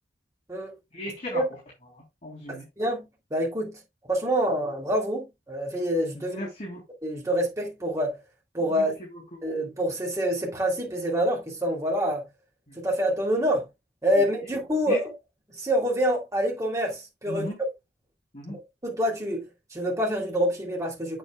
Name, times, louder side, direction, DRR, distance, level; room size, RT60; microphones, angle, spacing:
voice 1, 0.9-1.4 1.9-2.7 6.1-6.8 8.7-9.4 12.7-12.8 14.1-14.3 14.9-15.0 17.3-17.6 18.3-18.6, left 1 dB, 40° left, 3.7 m, -37 dB
voice 2, 2.8-3.8 4.1-6.5 7.0-8.2 8.5-8.9 9.4-12.3 12.8-13.7 14.0-15.0 15.6-17.5 18.5-18.6 18.8-19.4 19.7-21.2, equal, 20° right, 3.1 m, -26 dB
8.2 x 7.8 x 2.3 m
head